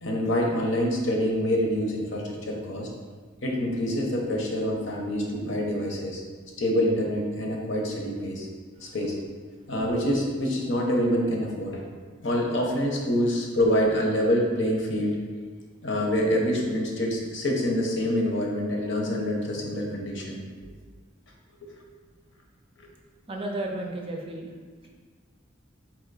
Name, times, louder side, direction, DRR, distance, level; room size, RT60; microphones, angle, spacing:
voice 1, 0.0-2.9 3.4-6.2 6.6-8.5 8.8-9.2 9.7-11.8 12.2-15.2 15.8-20.4, equal, 65° left, 0 dB, 0.8 m, -26 dB
voice 2, 23.3-24.5, right 1 dB, 30° right, 1 dB, 0.5 m, -33 dB
4.3 x 2.9 x 4.0 m, 1.5 s
head